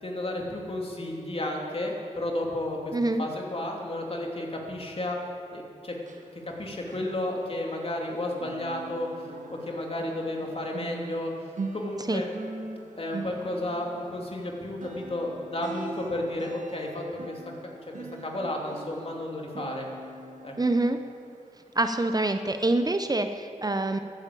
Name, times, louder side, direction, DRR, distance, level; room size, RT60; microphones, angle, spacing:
voice 1, 0.0-5.2 5.5-5.9 6.6-11.3 11.7-12.3 13.0-17.4 18.2-19.9 20.4-20.5, left 1 dB, 45° left, 0 dB, 2.9 m, -32 dB
voice 2, 2.9-3.2 12.1-12.2 20.6-21.0 21.8-24.0, right 2 dB, 30° right, 8 dB, 0.8 m, -25 dB
sound 1, 5.9-8.1 8.3-21.5 21.8-22.1 22.5-22.6, right 3 dB, 70° right, 1.5 m, -42 dB
13.5 x 9.6 x 8.4 m, 2.4 s
cardioid pair, 50°, 13 cm